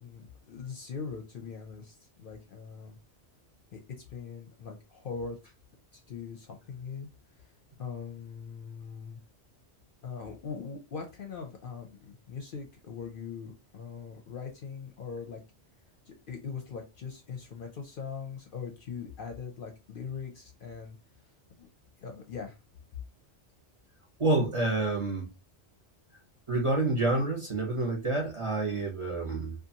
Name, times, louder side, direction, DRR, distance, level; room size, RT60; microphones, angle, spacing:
voice 1, 0.0-3.0 3.7-5.4 5.9-7.1 7.8-9.2 10.0-15.4 16.1-21.0 21.6-21.7 22.0-22.6, left 5 dB, 55° left, 0.7 m, -41 dB
voice 2, 24.2-25.3 26.5-29.5, right 2 dB, 30° right, 0.7 m, -28 dB
2.6 x 2.3 x 2.7 m
omnidirectional pair, 1.2 m